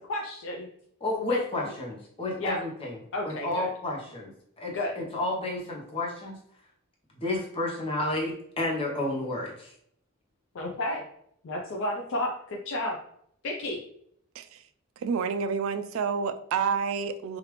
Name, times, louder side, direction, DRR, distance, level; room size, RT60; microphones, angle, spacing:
voice 1, 0.1-0.7 1.2-1.4 2.4-2.6 3.1-3.7 4.7-4.9 10.5-11.0 11.4-13.0 13.4-13.8, left 1 dB, 60° left, -1 dB, 0.4 m, -31 dB
voice 2, 1.0-3.0 3.2-4.3 4.6-6.4 7.2-9.7, left 2 dB, 25° left, -2 dB, 0.8 m, -31 dB
voice 3, 15.0-17.4, right 6 dB, 65° right, 10 dB, 0.3 m, -29 dB
3.2 x 2.4 x 3.0 m, 0.69 s
head